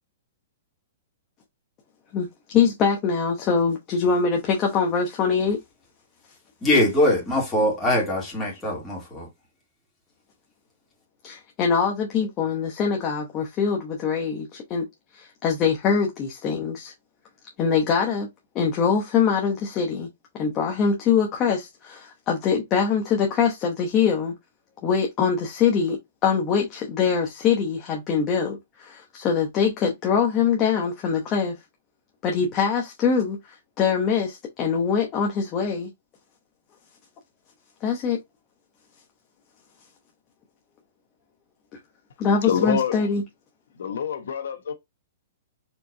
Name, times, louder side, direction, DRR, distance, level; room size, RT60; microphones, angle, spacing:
voice 1, 2.5-5.6 11.2-14.9 15.1-16.9 17.6-18.3 18.5-20.1 20.4-24.3 24.8-31.5 32.2-35.9 37.8-38.2 42.2-43.2, left 6 dB, 25° left, 0.9 m, -23 dB
voice 2, 6.6-9.3, left 1 dB, 10° left, 2.5 m, -22 dB
voice 3, 42.4-43.0 43.8-44.7, left 8 dB, 80° left, 0.9 m, -26 dB
4.6 x 3.8 x 2.7 m
hypercardioid pair, 160°, 0 cm